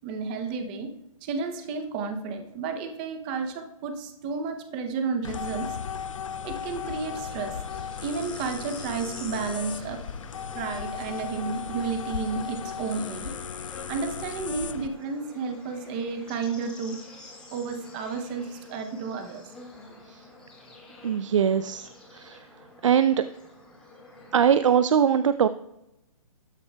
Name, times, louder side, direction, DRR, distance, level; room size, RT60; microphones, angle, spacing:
voice 1, 0.0-0.9 1.2-5.8 6.4-7.6 8.0-10.0 10.5-13.3 13.9-17.0 17.5-19.4, right 5 dB, 15° right, 6 dB, 0.6 m, -32 dB
sound 1, 5.2-14.9, left 7 dB, 65° left, 0.5 m, -36 dB
Bird / Insect, 7.0-24.4, left 2 dB, 5° left, 1.8 m, -48 dB
voice 2, 21.0-22.5 22.8-23.3 24.3-25.5, right 8 dB, 60° right, 12 dB, 0.4 m, -22 dB
13.0 x 9.7 x 2.2 m, 0.90 s
hypercardioid pair, 170°, 18 cm